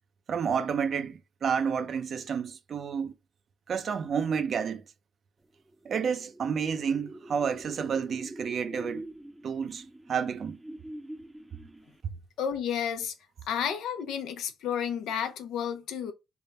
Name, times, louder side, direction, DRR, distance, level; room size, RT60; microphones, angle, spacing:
voice 1, 0.3-3.1 3.7-4.8 5.8-9.0 9.4-10.6, right 6 dB, 55° right, 0.5 m, -30 dB
sound 1, 5.7-12.2, right 1 dB, 10° right, 0.6 m, -45 dB
voice 2, 12.4-13.1 13.5-16.1, left 8 dB, 85° left, 0.6 m, -31 dB
3.5 x 2.2 x 4.0 m
cardioid pair, 90°, 0 cm